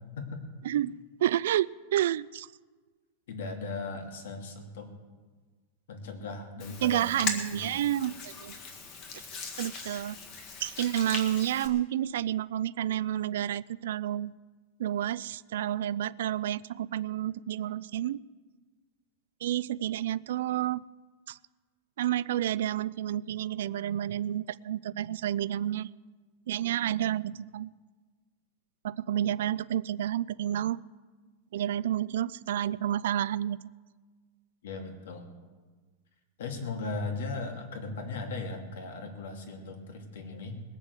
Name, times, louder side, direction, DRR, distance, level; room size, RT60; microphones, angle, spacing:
voice 1, 1.2-2.5 6.8-8.6 9.6-10.2 10.6-14.3 14.8-18.2 19.4-20.8 21.3-21.4 22.0-25.9 26.5-27.7 28.8-30.8 31.5-33.6, right 12 dB, 70° right, 18 dB, 0.3 m, -30 dB
voice 2, 3.3-4.9 5.9-7.7 34.6-35.3 36.4-40.6, left 3 dB, 80° left, 4 dB, 2.6 m, -38 dB
Hands, 6.6-11.7, left 4 dB, 30° left, 1.7 m, -39 dB
20.0 x 7.1 x 8.2 m, 1.4 s
supercardioid pair, 175°, 0 cm